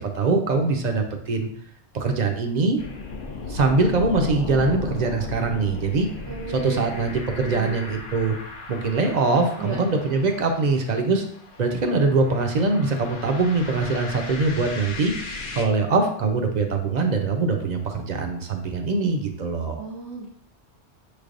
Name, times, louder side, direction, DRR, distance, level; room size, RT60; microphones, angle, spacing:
voice 1, 0.0-1.5 1.9-2.8 3.5-6.1 6.5-8.4 8.7-11.2 11.6-15.1 15.5-19.8, right 3 dB, 50° right, 4 dB, 0.6 m, -23 dB
sound 1, 2.8-15.6, left 3 dB, 55° left, 0.8 m, -36 dB
voice 2, 6.3-7.1 7.3-7.9 9.6-9.8 19.8-20.3, right 3 dB, 85° right, -2 dB, 1.1 m, -35 dB
6.0 x 3.3 x 2.5 m, 0.63 s
omnidirectional pair, 1.2 m